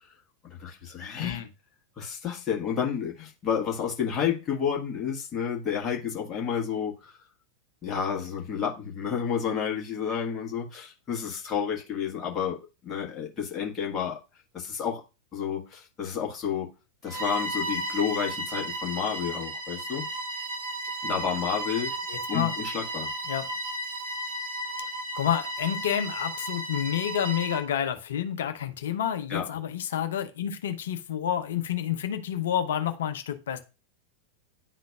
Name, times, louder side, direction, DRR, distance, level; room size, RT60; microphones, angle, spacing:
voice 1, 0.6-1.4 2.0-7.1 7.8-12.6 12.8-14.2 14.5-15.0 15.3-16.7 17.0-20.1 21.0-21.9 22.3-23.1 29.3-29.5, left 7 dB, 25° left, -1 dB, 1.7 m, -30 dB
voice 2, 1.2-1.5 22.1-22.6 23.3-23.4 25.1-33.6, left 10 dB, 60° left, 8 dB, 0.7 m, -29 dB
Bowed string instrument, 17.1-27.7, right 1 dB, 65° right, 1.2 m, -34 dB
10.5 x 3.8 x 2.4 m, 0.29 s
figure-of-eight pair, 90°, 0 cm